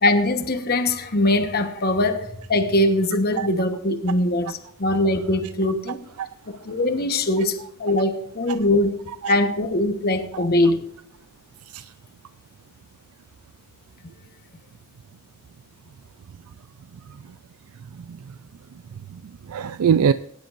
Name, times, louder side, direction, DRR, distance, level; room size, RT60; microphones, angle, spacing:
voice 1, 0.0-6.0 6.5-9.0 9.3-10.9, left 1 dB, 45° left, 1.2 m, -22 dB
voice 2, 11.6-11.9 17.1-17.4 17.7-18.4 18.7-20.1, right 7 dB, 85° right, 0.4 m, -25 dB
18.5 x 10.5 x 2.6 m
head